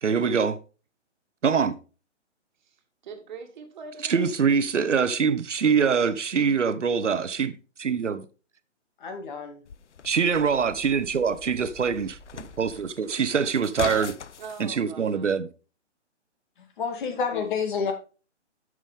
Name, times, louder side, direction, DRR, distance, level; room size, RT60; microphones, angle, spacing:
voice 1, 0.0-0.6 1.4-1.8 4.0-7.5 7.8-8.2 10.0-14.1 14.6-15.5, right 6 dB, 75° right, 1.0 m, -24 dB
voice 2, 3.0-4.3 14.4-15.3 17.1-17.2, right 5 dB, 40° right, 1.9 m, -42 dB
voice 3, 9.0-9.6 16.6-17.9, left 5 dB, 40° left, 2.2 m, -29 dB
sound 1, 9.7-14.7, left 7 dB, 70° left, 0.7 m, -40 dB
sound 2, 10.2-12.8, left 1 dB, 10° right, 1.0 m, -50 dB
11.0 x 6.3 x 3.6 m
figure-of-eight pair, 140°, 36 cm